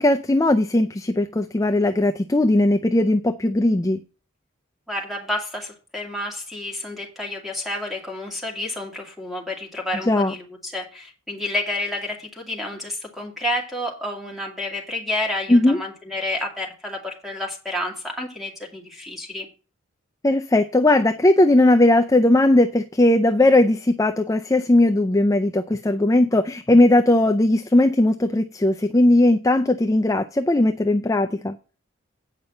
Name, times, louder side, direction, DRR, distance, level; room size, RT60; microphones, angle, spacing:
voice 1, 0.0-4.0 10.1-10.3 15.5-15.8 20.2-31.5, left 1 dB, 15° left, 0.4 m, -18 dB
voice 2, 4.9-19.5, left 1 dB, ahead, 2.3 m, -30 dB
8.9 x 5.4 x 7.7 m
head